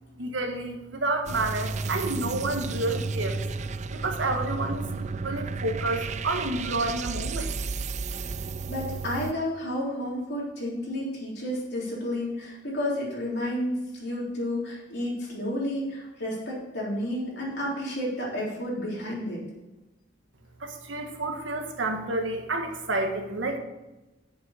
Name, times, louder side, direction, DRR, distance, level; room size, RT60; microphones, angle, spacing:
voice 1, 0.2-3.4 3.9-4.9 5.2-7.5 20.6-23.6, right 2 dB, 80° right, 4 dB, 1.4 m, -29 dB
sound 1, 1.3-9.3, right 4 dB, 40° right, 0.4 m, -32 dB
voice 2, 8.7-19.4, left 1 dB, 60° left, -5 dB, 3.7 m, -31 dB
7.2 x 6.1 x 7.1 m, 1.1 s
head